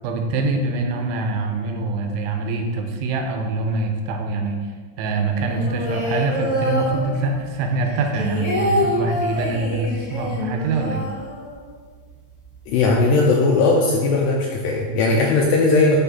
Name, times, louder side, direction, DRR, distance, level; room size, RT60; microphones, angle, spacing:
voice 1, 0.0-4.6 5.0-11.0, right 3 dB, 80° right, 3 dB, 3.1 m, -24 dB
sound 1, 5.4-7.5 7.8-11.8 12.1-12.2 12.4-13.0, left 1 dB, 30° left, 1.5 m, -26 dB
voice 2, 12.7-16.0, left 3 dB, 80° left, -1 dB, 2.5 m, -18 dB
9.6 x 5.9 x 4.1 m, 1.5 s
omnidirectional pair, 5.6 m